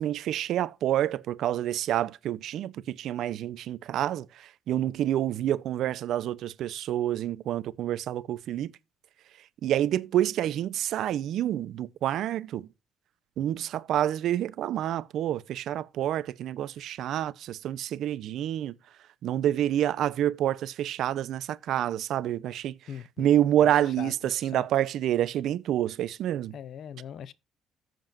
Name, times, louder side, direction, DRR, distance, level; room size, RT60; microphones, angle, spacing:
voice 1, 0.0-8.7 9.6-12.7 13.4-18.8 19.2-22.8 23.2-26.6, right 11 dB, 70° right, 0.6 m, -28 dB
voice 2, 22.9-23.3 23.6-23.7 24.0-24.7 26.5-27.3, left 9 dB, 60° left, 0.6 m, -41 dB
14.5 x 7.6 x 2.5 m
cardioid pair, 110°, 0 cm